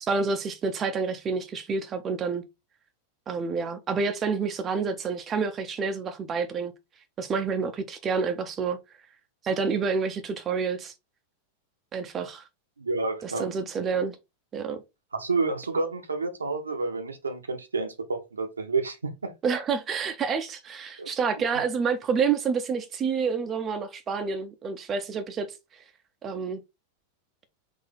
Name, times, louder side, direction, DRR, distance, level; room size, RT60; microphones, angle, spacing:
voice 1, 0.0-2.4 3.3-6.7 7.2-8.8 9.4-10.9 11.9-12.4 13.2-14.2 14.5-14.8 19.4-25.5 26.2-26.6, right 5 dB, 25° right, 0.6 m, -28 dB
voice 2, 12.8-13.5 15.1-19.3 21.0-21.1, right 3 dB, 75° right, 0.7 m, -29 dB
3.8 x 2.6 x 3.9 m
figure-of-eight pair, 90°, 0 cm